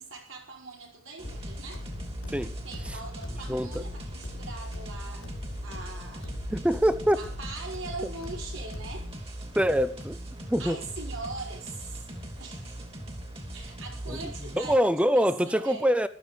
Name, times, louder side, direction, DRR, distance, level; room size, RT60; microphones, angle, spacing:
voice 1, 0.0-1.8 2.6-5.3 5.6-6.4 7.1-9.1 10.6-12.1 12.4-12.8 13.5-15.9, right 3 dB, 65° right, 5.0 m, -41 dB
sound 1, 1.2-9.2, left 1 dB, 90° left, 3.0 m, -41 dB
sound 2, 1.2-14.7, right 1 dB, 30° right, 3.0 m, -40 dB
voice 2, 3.3-3.8 6.5-7.2 9.5-10.2 10.5-10.8 14.1-16.1, equal, 5° right, 0.8 m, -25 dB
15.0 x 12.0 x 5.1 m
head